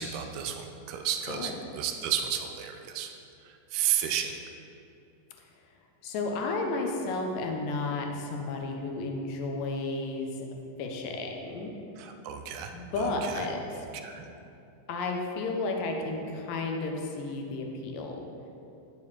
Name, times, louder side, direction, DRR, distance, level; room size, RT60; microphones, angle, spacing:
voice 1, 0.0-3.1 3.7-4.4 12.0-13.4 13.8-14.3, right 9 dB, 45° right, 5 dB, 0.6 m, -32 dB
voice 2, 6.0-10.5 10.8-11.7 12.7-13.6 14.9-18.2, left 3 dB, 45° left, 2 dB, 1.0 m, -32 dB
9.2 x 6.9 x 3.2 m, 2.7 s
figure-of-eight pair, 90°, 0 cm